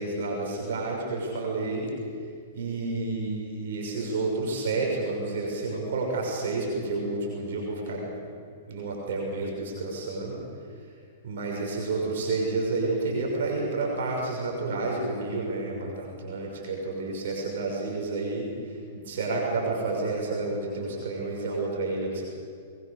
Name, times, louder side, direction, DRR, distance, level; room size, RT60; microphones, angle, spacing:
voice 1, 0.0-1.9 2.5-8.1 8.7-10.4 11.2-22.2, right 3 dB, 65° right, -1 dB, 6.2 m, -30 dB
23.5 x 22.0 x 6.8 m, 2.2 s
hypercardioid pair, 110°, 0 cm